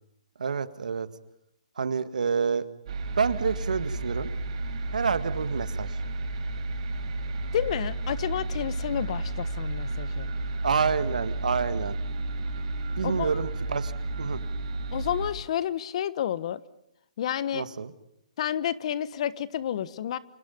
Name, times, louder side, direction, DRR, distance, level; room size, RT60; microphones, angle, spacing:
voice 1, 0.4-1.1 1.8-2.7 3.2-4.3 4.9-5.9 10.6-12.0 13.0-14.4 17.5-17.9, right 5 dB, 80° right, 11 dB, 1.9 m, -28 dB
sound 1, 2.9-15.3, right 2 dB, 55° right, 5.9 m, -32 dB
voice 2, 7.5-10.3 13.0-13.4 14.9-16.6 17.2-17.7 18.4-20.2, left 10 dB, 55° left, 15 dB, 1.3 m, -30 dB
29.0 x 28.0 x 5.4 m, 0.77 s
hypercardioid pair, 140°, 4 cm